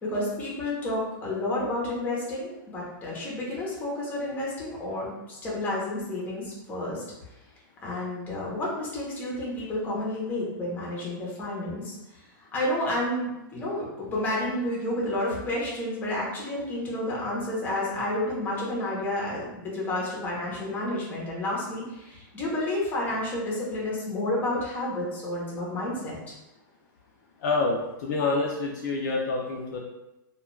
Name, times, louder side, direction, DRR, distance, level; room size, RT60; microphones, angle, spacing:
voice 1, 0.0-7.0 7.8-26.3, left 1 dB, 15° left, -5 dB, 0.8 m, -30 dB
voice 2, 27.4-29.8, left 3 dB, 50° left, -1 dB, 0.4 m, -27 dB
2.3 x 2.2 x 3.1 m, 0.93 s
hypercardioid pair, 155°, 12 cm